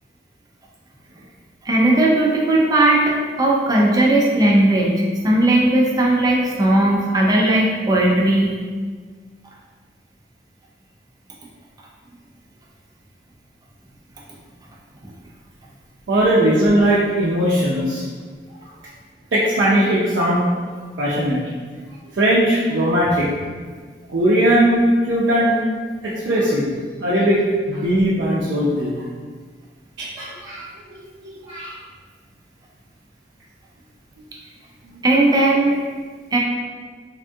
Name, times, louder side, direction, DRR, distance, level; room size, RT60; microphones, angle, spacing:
voice 1, 1.7-8.5 35.0-35.8 36.3-36.4, right 1 dB, 20° right, -2 dB, 0.4 m, -17 dB
voice 2, 16.1-18.0 19.3-20.4 21.0-21.4 22.1-23.3 24.1-25.5 26.0-29.0 30.0-30.7 30.9-31.8 34.9-35.2, right 1 dB, 85° right, -7 dB, 0.4 m, -19 dB
3.5 x 2.2 x 2.6 m, 1.5 s
head